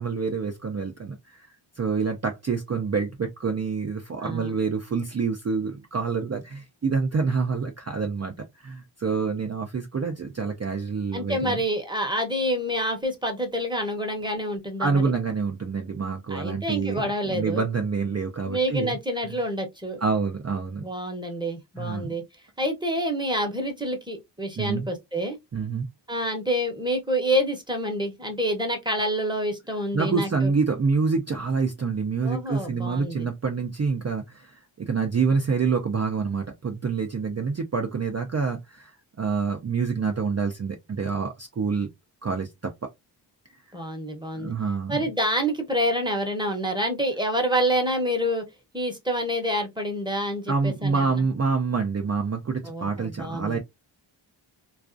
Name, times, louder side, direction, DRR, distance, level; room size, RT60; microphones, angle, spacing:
voice 1, 0.0-11.6 14.8-19.0 19.2-19.4 20.0-20.9 21.8-22.1 24.6-24.9 25.5-25.9 29.9-41.9 42.2-42.9 44.4-45.1 50.5-53.6, right 5 dB, 35° right, 0.4 m, -27 dB
voice 2, 4.2-4.6 11.1-15.1 16.3-17.6 18.4-20.0 20.8-22.2 22.6-25.4 26.1-30.5 32.2-33.3 43.7-44.5 44.9-48.4 48.7-51.2 52.6-53.6, equal, 10° right, 0.8 m, -27 dB
2.4 x 2.3 x 2.4 m
wide cardioid pair, 75°, 49 cm